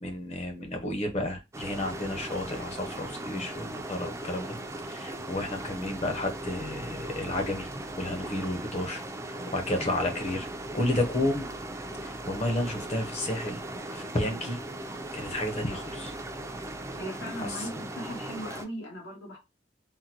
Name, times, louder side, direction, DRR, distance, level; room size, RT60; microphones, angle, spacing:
voice 1, 0.0-4.6 4.8-7.7 8.0-10.5 10.7-11.5 12.0-13.6 13.9-14.6 15.1-16.1 17.6-17.7, left 1 dB, 35° left, 0.8 m, -31 dB
sound 1, 1.5-18.6, right 1 dB, 15° right, 0.4 m, -38 dB
voice 2, 17.0-19.4, equal, 80° left, 1.5 m, -38 dB
3.7 x 2.1 x 2.9 m
head